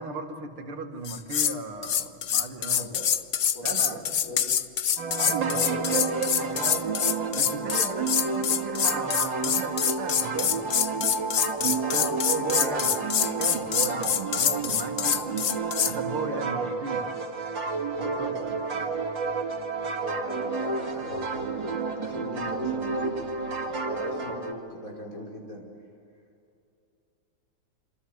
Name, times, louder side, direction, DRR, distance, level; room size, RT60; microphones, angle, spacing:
voice 1, 0.0-2.9 3.6-4.1 5.2-5.6 6.4-6.6 7.4-10.6 11.6-13.0 13.4-15.4 15.8-17.0, right 4 dB, 85° right, 5 dB, 2.8 m, -36 dB
sound 1, 1.0-1.6 1.8-15.9, left 9 dB, 85° left, 0.6 m, -26 dB
voice 2, 3.5-4.4 4.9-6.1 6.5-7.1 7.6-7.9 11.7-12.9 13.5-14.1 16.0-16.6 18.0-18.8 19.9-23.1 23.8-25.6, equal, 40° left, -1 dB, 6.0 m, -39 dB
sound 2, 5.0-24.5, right 4 dB, 60° right, 3.0 m, -30 dB
27.0 x 26.5 x 8.0 m, 2.5 s
omnidirectional pair, 2.3 m